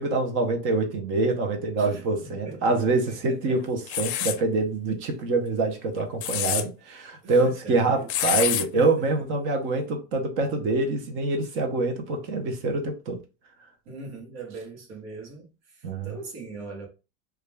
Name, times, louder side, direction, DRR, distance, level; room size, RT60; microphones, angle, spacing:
voice 1, 0.0-13.2 15.8-16.1, right 3 dB, 40° right, 0.5 m, -25 dB
voice 2, 1.8-2.7 3.1-3.6 7.2-8.4 8.7-9.1 13.9-16.9, right 3 dB, 75° right, 1.0 m, -41 dB
sound 1, 3.9-4.4 6.0-6.6 8.1-8.6, left 12 dB, 75° left, 0.5 m, -26 dB
2.3 x 2.1 x 3.1 m
supercardioid pair, 160°, 33 cm